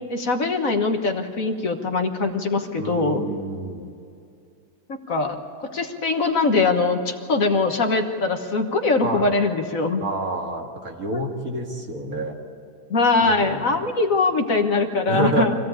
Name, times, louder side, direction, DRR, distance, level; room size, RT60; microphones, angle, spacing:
voice 1, 0.1-3.2 4.9-10.0 11.1-11.2 12.9-15.6, left 3 dB, 55° left, 5 dB, 1.7 m, -22 dB
voice 2, 2.8-3.8 9.0-9.3 10.0-12.4 13.2-13.7 15.1-15.5, right 2 dB, 55° right, 2 dB, 2.3 m, -28 dB
25.0 x 16.5 x 8.7 m, 2.4 s
omnidirectional pair, 1.8 m